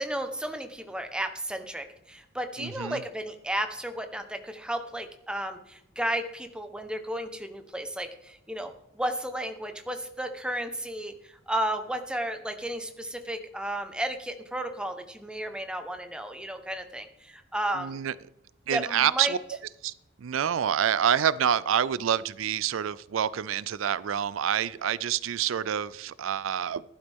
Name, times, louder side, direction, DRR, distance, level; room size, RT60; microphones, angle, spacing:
voice 1, 0.0-18.0 18.7-19.3, right 1 dB, 5° right, 1.0 m, -33 dB
voice 2, 2.6-3.0 17.7-18.1 18.7-19.4 19.8-19.9 20.2-26.8, right 9 dB, 85° right, 0.4 m, -27 dB
15.0 x 11.5 x 3.6 m
head